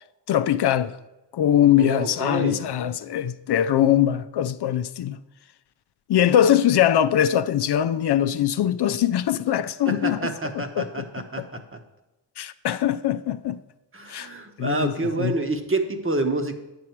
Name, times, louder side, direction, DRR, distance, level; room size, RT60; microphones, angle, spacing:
voice 1, 0.3-1.0 1.3-5.2 6.1-11.5 12.4-13.6 14.1-14.3 14.6-15.4, left 10 dB, 70° left, 0.5 m, -22 dB
voice 2, 1.8-2.6 9.9-11.8 13.9-16.5, right 2 dB, 30° right, 1.1 m, -28 dB
8.5 x 6.9 x 4.5 m
cardioid pair, 55°, 42 cm